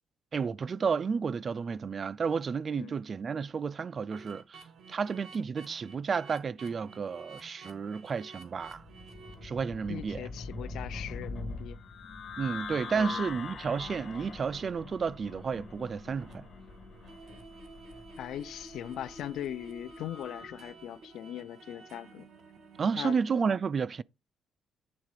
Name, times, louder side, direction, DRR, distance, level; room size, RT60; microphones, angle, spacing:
voice 1, 0.3-4.6 4.9-8.8 9.4-10.2 12.4-16.4 22.8-24.0, right 5 dB, 45° right, 0.3 m, -31 dB
sound 1, 4.1-12.0 12.4-12.5 13.1-23.4, right 4 dB, 65° right, 1.4 m, -53 dB
sound 2, 8.7-20.5, left 4 dB, 50° left, 2.2 m, -43 dB
voice 2, 9.9-11.8 12.9-13.3 18.2-22.3 23.0-23.2, left 11 dB, 80° left, 0.5 m, -40 dB
8.7 x 3.7 x 4.8 m
cardioid pair, 90°, 0 cm